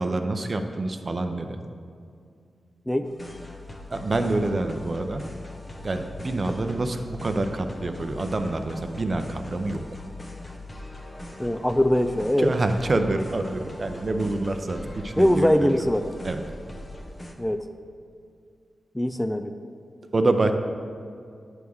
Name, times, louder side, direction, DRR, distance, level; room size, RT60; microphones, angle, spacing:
voice 1, 0.0-1.6 3.9-5.2 5.8-9.8 12.4-15.5 16.2-16.4 20.1-20.5, right 2 dB, 40° right, 7 dB, 0.6 m, -26 dB
sound 1, 3.0-17.3, left 2 dB, 30° left, 0.8 m, -41 dB
voice 2, 11.4-12.5 15.2-16.1 17.4-17.6 19.0-19.5, left 1 dB, 10° left, 8 dB, 0.3 m, -22 dB
9.1 x 3.5 x 6.3 m, 2.3 s
cardioid pair, 75°, 0 cm